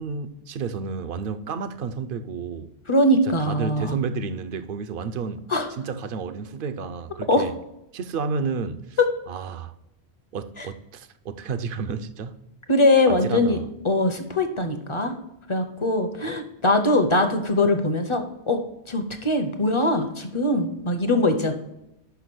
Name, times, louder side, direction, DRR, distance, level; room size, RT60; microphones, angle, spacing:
voice 1, 0.0-2.7 3.4-5.4 5.8-7.5 7.9-9.0 9.3-9.7 10.3-12.4 13.2-13.7, right 5 dB, 60° right, 0.7 m, -31 dB
voice 2, 2.9-4.0 5.5-5.7 7.3-7.5 10.6-10.7 12.7-15.1 15.5-18.6 18.9-21.5, left 1 dB, 35° left, 0.7 m, -22 dB
5.8 x 5.7 x 6.1 m
omnidirectional pair, 1.1 m